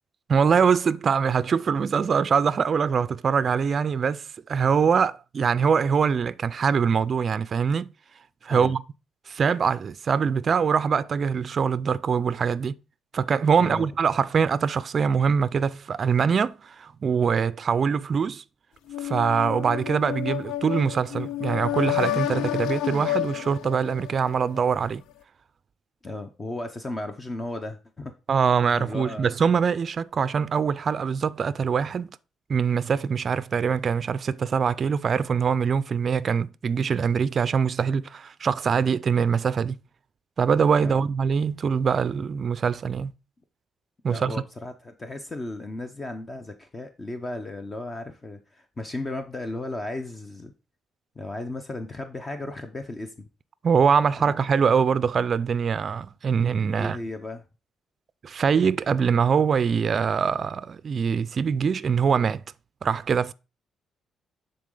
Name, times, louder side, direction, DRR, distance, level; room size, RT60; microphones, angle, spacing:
voice 1, 0.3-7.9 8.4-8.8 9.3-12.7 13.1-18.4 19.0-25.0 28.3-32.1 32.5-39.8 40.4-43.1 44.0-44.4 53.6-57.0 58.2-62.4 62.8-63.3, right 6 dB, 45° right, 0.4 m, -23 dB
voice 2, 13.6-13.9 26.0-28.1 28.7-29.3 40.8-41.0 44.1-50.5 51.2-53.3 54.1-54.2 56.8-57.4, left 2 dB, 25° left, 0.7 m, -35 dB
sound 1, 18.9-24.7, left 13 dB, 85° left, 0.3 m, -30 dB
9.4 x 3.9 x 3.8 m
cardioid pair, 90°, 0 cm